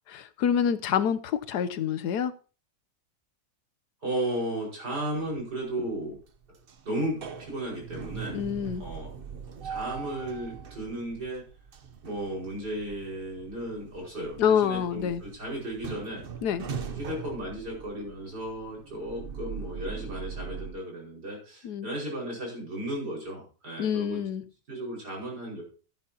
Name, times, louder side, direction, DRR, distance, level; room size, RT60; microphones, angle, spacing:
voice 1, 0.1-2.3 8.3-8.8 14.4-15.2 16.4-16.6 21.6-21.9 23.8-24.4, left 8 dB, 80° left, 12 dB, 1.3 m, -27 dB
voice 2, 4.0-6.2 6.9-8.4 8.8-9.1 9.6-11.4 12.0-16.2 16.9-24.2 24.7-25.6, right 1 dB, 80° right, -2 dB, 5.8 m, -34 dB
sound 1, 5.2-5.7 6.1-20.7, right 6 dB, 45° right, 0.8 m, -41 dB
15.0 x 9.5 x 2.8 m, 0.36 s
omnidirectional pair, 1.7 m